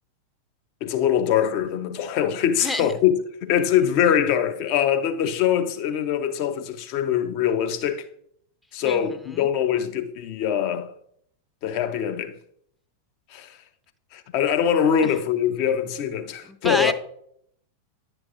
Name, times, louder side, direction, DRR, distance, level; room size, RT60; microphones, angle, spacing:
voice 1, 0.8-3.1 3.4-8.1 8.7-10.9 11.6-12.4 13.3-13.6 14.1-16.9, left 9 dB, 45° left, 0.7 m, -23 dB
voice 2, 2.6-2.9 8.8-9.5 15.0-15.1 16.4-16.9, left 1 dB, 5° left, 0.6 m, -28 dB
9.9 x 6.2 x 2.5 m
figure-of-eight pair, 90°, 0 cm